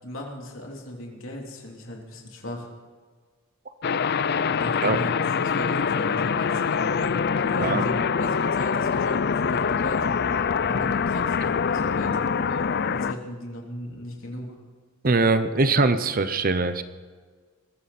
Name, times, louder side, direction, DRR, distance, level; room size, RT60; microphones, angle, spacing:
voice 1, 0.0-2.7 4.6-7.1 7.5-10.2 10.6-12.2 12.9-14.6, left 1 dB, 70° left, -1 dB, 3.4 m, -37 dB
sound 1, 3.8-13.1, left 6 dB, 50° left, 0.5 m, -24 dB
voice 2, 15.0-16.8, right 3 dB, 45° right, 11 dB, 0.8 m, -22 dB
22.5 x 15.0 x 4.3 m, 1.5 s
head